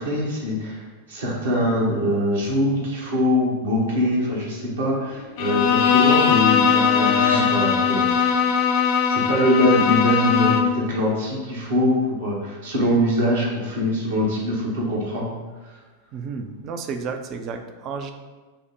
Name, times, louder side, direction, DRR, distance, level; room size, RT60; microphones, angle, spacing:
voice 1, 0.0-8.4 9.0-15.3, left 1 dB, 65° right, -4 dB, 1.1 m, -23 dB
sound 1, 4.4-7.6, left 6 dB, 85° left, 0.8 m, -33 dB
Bowed string instrument, 5.4-10.8, left 7 dB, 45° left, 0.4 m, -20 dB
voice 2, 16.1-18.1, right 5 dB, 35° right, 6 dB, 0.4 m, -32 dB
5.5 x 2.1 x 3.7 m, 1.3 s
figure-of-eight pair, 90°, 0 cm